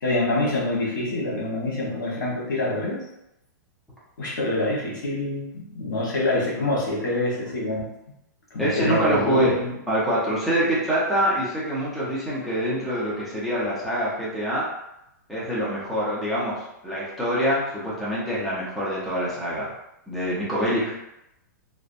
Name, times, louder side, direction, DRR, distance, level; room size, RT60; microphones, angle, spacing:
voice 1, 0.0-3.0 4.2-7.9 8.5-9.7 20.7-20.8, left 2 dB, 80° left, -4 dB, 1.0 m, -26 dB
voice 2, 8.6-9.5 9.9-14.7 15.3-19.7 20.1-21.0, equal, ahead, -9 dB, 0.6 m, -25 dB
2.5 x 2.1 x 2.5 m, 0.86 s
hypercardioid pair, 150°, 10 cm